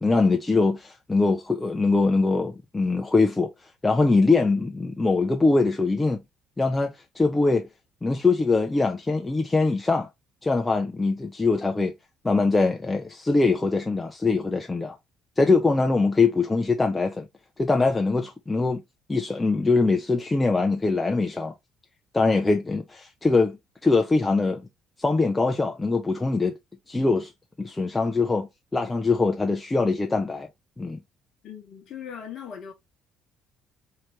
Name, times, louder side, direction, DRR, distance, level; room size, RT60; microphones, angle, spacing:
voice 1, 0.0-3.5 3.8-6.2 6.6-7.7 8.0-10.1 10.4-11.9 12.2-15.0 15.4-17.3 17.6-18.8 19.1-21.5 22.1-23.6 23.8-24.7 25.0-26.5 26.9-27.3 27.6-30.5 30.8-31.0, left 3 dB, 20° left, 0.6 m, -22 dB
voice 2, 31.4-32.7, left 8 dB, 55° left, 1.1 m, -39 dB
4.4 x 2.9 x 3.1 m
hypercardioid pair, 50°, 0 cm